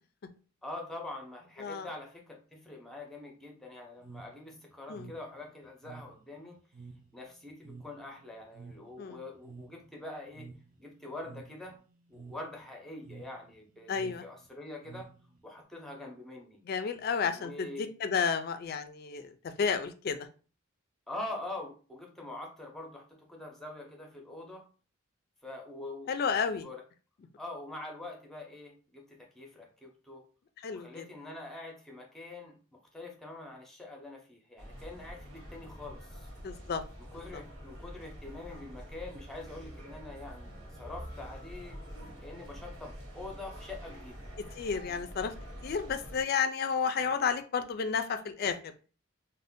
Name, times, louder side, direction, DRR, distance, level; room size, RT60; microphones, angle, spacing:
voice 1, 0.6-6.6 7.1-10.5 10.8-11.8 12.1-15.1 15.4-16.6 17.3-17.9 21.1-24.6 25.4-26.8 27.4-30.2 30.7-36.3 37.0-41.8 42.2-44.2, left 2 dB, ahead, 0 dB, 0.6 m, -44 dB
sound 1, 4.0-15.6, right 4 dB, 40° right, 0.4 m, -52 dB
voice 2, 13.9-14.2 16.7-20.2 26.1-26.7 30.6-31.0 36.4-36.8 37.3-37.4 44.6-45.3 45.6-48.7, left 6 dB, 50° left, 9 dB, 0.3 m, -31 dB
sound 2, 34.6-46.2, equal, 70° right, 1.1 m, -46 dB
2.6 x 2.1 x 3.4 m, 0.37 s
head